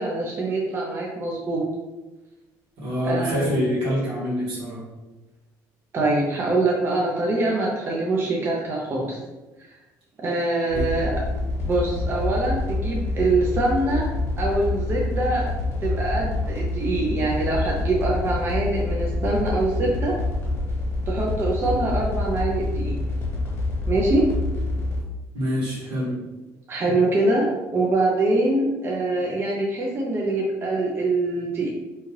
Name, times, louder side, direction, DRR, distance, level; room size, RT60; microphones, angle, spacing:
voice 1, 0.0-1.6 3.0-3.5 5.9-9.2 9.6-9.7 10.2-11.2 11.6-14.1 14.4-15.5 15.8-20.1 21.1-23.0 23.9-24.2 26.7-31.7, right 2 dB, 35° right, -2 dB, 0.5 m, -24 dB
voice 2, 2.8-4.8 10.7-10.9 25.3-26.2, equal, 80° right, -6 dB, 1.5 m, -26 dB
sound 1, 10.7-25.0, left 2 dB, 35° left, 1.2 m, -27 dB
2.8 x 2.3 x 3.1 m, 1.1 s
cardioid pair, 115°, 7 cm